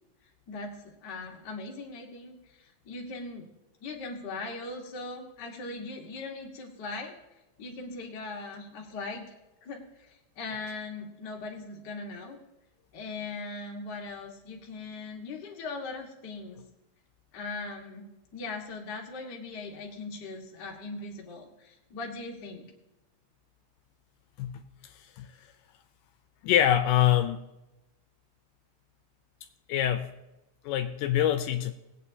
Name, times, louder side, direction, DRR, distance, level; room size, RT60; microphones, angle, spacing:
voice 1, 0.5-3.5 3.8-7.1 7.6-9.3 9.6-12.4 12.9-16.6 17.3-22.7, left 3 dB, 45° left, 0 dB, 1.4 m, -40 dB
voice 2, 26.4-27.4 29.7-30.1 30.7-31.7, left 11 dB, 80° left, 8 dB, 2.1 m, -24 dB
20.0 x 8.5 x 2.8 m, 0.96 s
omnidirectional pair, 4.0 m